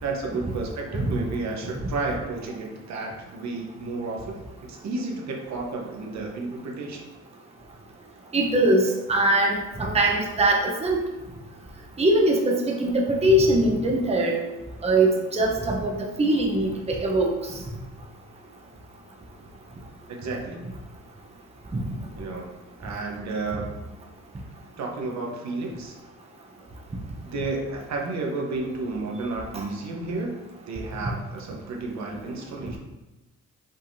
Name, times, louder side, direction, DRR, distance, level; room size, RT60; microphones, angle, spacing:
voice 1, 0.0-4.3 4.7-7.1 20.1-20.6 22.1-22.5 22.8-23.7 24.4-24.5 24.8-26.0 27.2-30.3 30.7-32.8, right 3 dB, 65° right, 0 dB, 0.9 m, -32 dB
voice 2, 8.3-11.0 12.0-14.4 14.8-17.3 21.7-21.8, right 1 dB, 20° right, -1 dB, 0.8 m, -22 dB
5.5 x 3.4 x 2.7 m, 1.1 s
cardioid pair, 90°, 30 cm